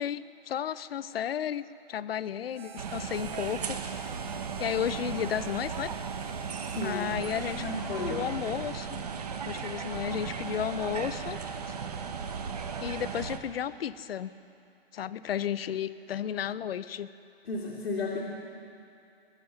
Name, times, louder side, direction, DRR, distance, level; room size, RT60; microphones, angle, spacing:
voice 1, 0.0-3.8 4.6-5.9 6.8-7.6 8.1-9.0 9.5-11.4 12.8-14.3 14.9-17.1, left 9 dB, 70° left, 16 dB, 0.6 m, -33 dB
Harmonica, 2.5-8.5, right 7 dB, 75° right, 1.2 m, -48 dB
sound 1, 2.8-13.4, right 6 dB, 40° right, 0.8 m, -36 dB
voice 2, 6.6-7.2 7.6-8.3 17.4-18.2, left 3 dB, 85° left, -4 dB, 2.5 m, -33 dB
21.0 x 7.7 x 6.5 m, 2.6 s
hypercardioid pair, 180°, 31 cm